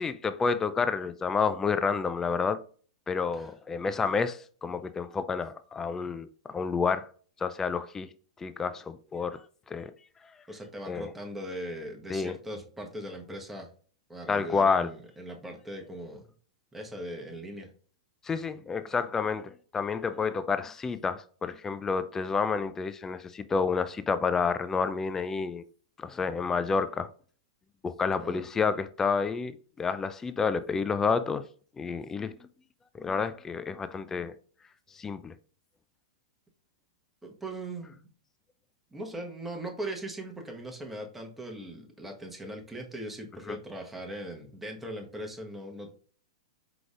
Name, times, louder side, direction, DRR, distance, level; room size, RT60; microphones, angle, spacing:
voice 1, 0.0-2.6 3.1-7.1 7.4-8.1 8.4-9.4 9.7-9.9 10.9-11.1 12.1-12.3 14.3-14.9 18.2-25.6 26.0-27.1 27.8-29.5 29.8-31.4 31.8-32.3 32.9-34.3 34.9-35.3 43.5-43.6, left 5 dB, 15° left, 0.3 m, -29 dB
voice 2, 10.5-13.7 14.1-16.3 16.7-17.7 28.1-28.5 37.2-38.1 38.9-45.9, right 1 dB, 5° right, 1.2 m, -40 dB
5.0 x 3.8 x 2.4 m
hypercardioid pair, 120°, 3 cm